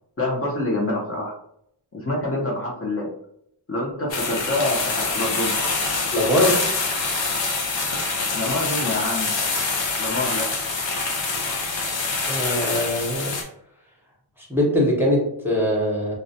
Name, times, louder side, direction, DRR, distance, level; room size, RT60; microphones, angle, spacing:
voice 1, 0.2-1.3 1.9-3.1 3.7-5.5 8.3-9.3 10.0-10.5, left 2 dB, 30° left, -5 dB, 0.7 m, -26 dB
sound 1, 4.1-13.4, left 3 dB, 70° left, 0.7 m, -25 dB
voice 2, 6.1-6.7 12.2-13.4 14.4-16.2, left 1 dB, 5° right, -4 dB, 0.8 m, -22 dB
2.4 x 2.0 x 2.7 m, 0.72 s
cardioid pair, 75°, 46 cm